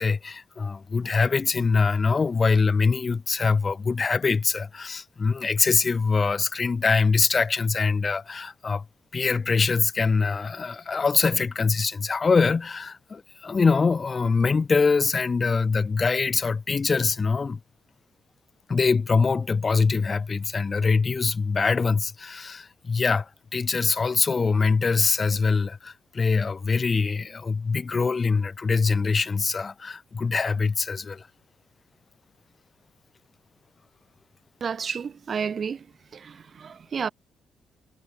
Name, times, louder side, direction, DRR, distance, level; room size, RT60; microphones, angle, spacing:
voice 1, 0.0-8.8 9.1-17.6 18.7-31.3, left 4 dB, 35° left, 3.1 m, -23 dB
voice 2, 34.6-35.9 36.1-37.1, right 6 dB, 45° right, 1.7 m, -31 dB
cardioid pair, 95°, 0 cm